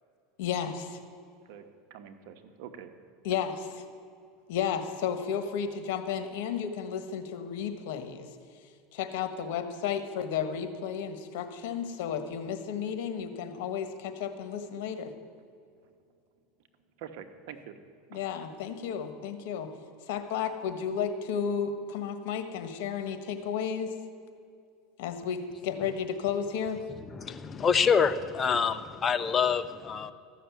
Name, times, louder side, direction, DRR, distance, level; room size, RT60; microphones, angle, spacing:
voice 1, 0.4-1.0 3.2-3.5 4.5-8.3 8.9-15.1 18.1-19.7 20.1-23.9 25.0-26.8, left 7 dB, 70° left, 9 dB, 1.4 m, -33 dB
voice 2, 1.9-2.9 3.3-3.4 15.8-15.9 17.0-17.8 18.1-18.2, right 8 dB, 70° right, 8 dB, 1.2 m, -45 dB
voice 3, 27.1-30.1, left 6 dB, 25° left, 11 dB, 0.6 m, -26 dB
14.0 x 6.6 x 9.4 m, 2.4 s
supercardioid pair, 130°, 0 cm